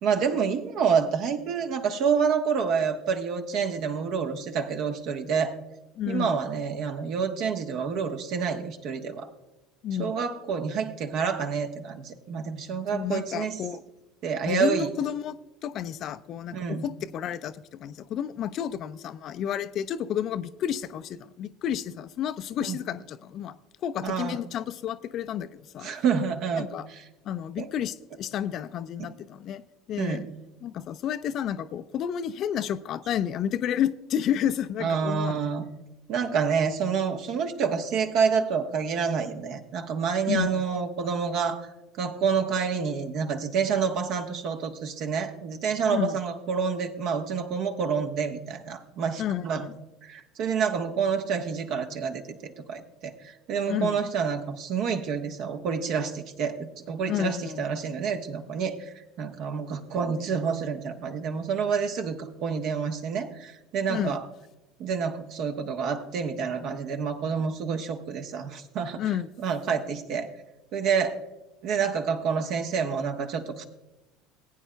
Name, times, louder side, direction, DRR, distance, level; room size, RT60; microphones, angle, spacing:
voice 1, 0.0-5.6 6.1-9.3 10.0-13.6 14.2-14.9 16.5-16.9 22.6-22.8 24.0-24.4 25.8-27.1 27.6-27.7 29.0-29.1 30.0-30.3 34.8-35.6 36.1-41.7 42.0-49.7 50.0-64.2 64.8-69.0 69.4-70.3 70.7-71.2 71.6-73.6, right 6 dB, 55° right, 1.1 m, -28 dB
voice 2, 6.0-6.4 9.8-10.1 12.9-13.8 14.5-15.4 15.6-25.9 26.6-26.8 27.3-29.6 29.9-30.2 30.6-35.4 40.3-40.6 45.9-46.2 49.2-49.7 53.7-54.0 57.1-57.6 63.9-64.2 69.0-69.3, left 9 dB, 50° left, 0.4 m, -31 dB
19.5 x 9.1 x 2.2 m
hypercardioid pair, 70°, 0 cm